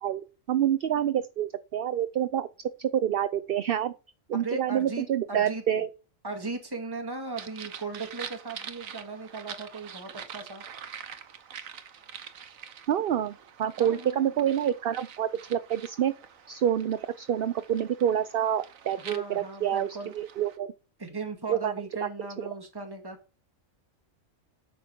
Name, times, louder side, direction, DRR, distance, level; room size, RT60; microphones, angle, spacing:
voice 1, 0.0-2.5 2.8-3.9 4.3-5.9 12.9-16.1 16.5-20.7 21.5-21.7 22.5-22.6, right 10 dB, 55° right, 0.7 m, -27 dB
voice 2, 4.3-5.6 6.2-10.6 13.8-14.3 19.0-20.1 21.0-23.2, right 3 dB, 15° right, 2.1 m, -37 dB
sound 1, 7.4-20.6, right 8 dB, 80° right, 1.4 m, -45 dB
9.1 x 8.8 x 4.5 m
omnidirectional pair, 1.4 m